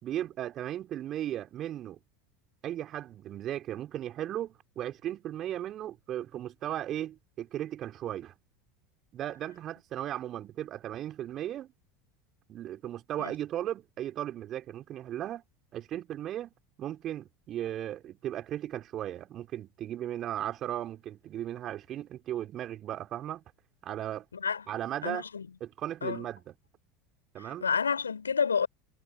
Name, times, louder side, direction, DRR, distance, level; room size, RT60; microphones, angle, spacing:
voice 1, 0.0-2.0 2.6-8.3 9.1-11.7 12.5-15.4 15.7-16.5 16.8-23.4 23.8-24.3 24.7-25.2 25.6-26.5 27.3-27.7, right 12 dB, 40° right, 3.4 m, -36 dB
voice 2, 24.3-24.6 25.0-25.5 26.0-26.2 27.6-28.7, left 6 dB, 85° left, 4.9 m, -29 dB
figure-of-eight pair, 75°, 0 cm